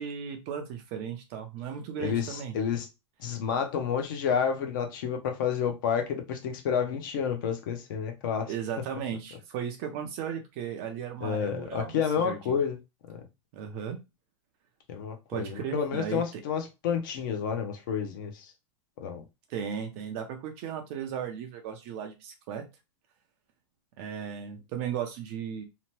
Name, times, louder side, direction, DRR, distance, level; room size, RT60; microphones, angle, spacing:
voice 1, 0.0-2.5 8.5-12.6 13.5-14.0 15.3-16.4 19.5-22.6 24.0-25.6, right 8 dB, 30° right, 0.4 m, -36 dB
voice 2, 2.0-2.9 3.2-8.5 11.2-12.8 13.1-13.2 14.9-18.5 19.0-19.2, left 7 dB, 45° left, 0.6 m, -30 dB
2.8 x 2.1 x 3.0 m
supercardioid pair, 170°, 16 cm